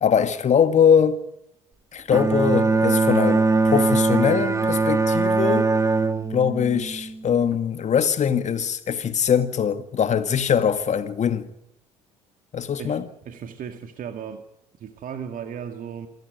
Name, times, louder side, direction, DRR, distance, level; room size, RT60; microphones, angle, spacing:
voice 1, 0.0-1.2 1.9-5.7 6.3-11.5 12.5-13.0, left 7 dB, 45° left, 2.1 m, -22 dB
Bowed string instrument, 2.1-7.6, right 3 dB, 15° right, 2.1 m, -21 dB
voice 2, 13.3-14.4 14.8-16.1, right 8 dB, 50° right, 2.0 m, -35 dB
27.5 x 13.5 x 9.4 m
hypercardioid pair, 60°, 17 cm